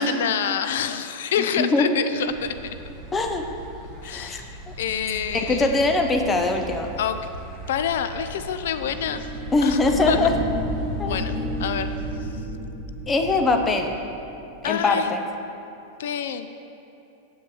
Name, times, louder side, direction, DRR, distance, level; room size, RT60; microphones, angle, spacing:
voice 1, 0.0-2.8 4.0-5.8 7.0-7.2 7.7-9.3 9.6-9.8 10.1-10.2 11.1-11.9 14.6-15.2 16.0-16.5, left 8 dB, 80° left, 10 dB, 0.4 m, -27 dB
voice 2, 1.6-1.9 3.1-3.4 4.0-4.7 5.3-6.9 9.5-10.3 11.0-11.2 13.1-13.9 14.6-15.2, left 3 dB, 15° left, 4 dB, 0.6 m, -22 dB
sound 1, 2.2-12.2, right 3 dB, 10° right, 1.5 m, -39 dB
sound 2, 8.8-14.8, right 1 dB, 25° right, 2.2 m, -31 dB
7.4 x 5.4 x 7.1 m, 2.8 s
supercardioid pair, 160°, 0 cm